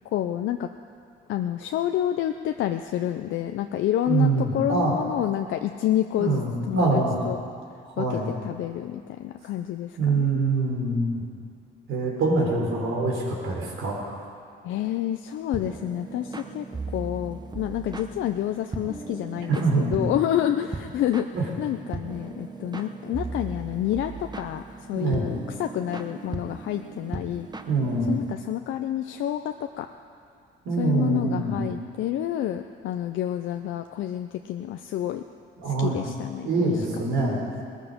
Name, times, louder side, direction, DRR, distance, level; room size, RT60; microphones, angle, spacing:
voice 1, 0.1-0.7 1.3-7.4 8.0-10.4 14.6-16.6 16.9-21.3 21.6-27.5 28.1-29.9 30.8-35.2 35.7-36.8 37.2-37.5, left 11 dB, 80° left, 6 dB, 0.6 m, -29 dB
voice 2, 4.1-4.9 6.2-7.2 8.0-8.3 10.0-11.2 11.9-14.2 19.6-20.0 21.3-21.4 24.9-25.3 27.7-28.1 30.7-31.6 35.6-36.0 36.4-37.5, right 3 dB, 85° right, -2 dB, 3.9 m, -24 dB
sound 1, 15.5-28.3, right 3 dB, 20° right, 1.0 m, -38 dB
18.5 x 14.0 x 5.2 m, 2.3 s
cardioid pair, 90°, 20 cm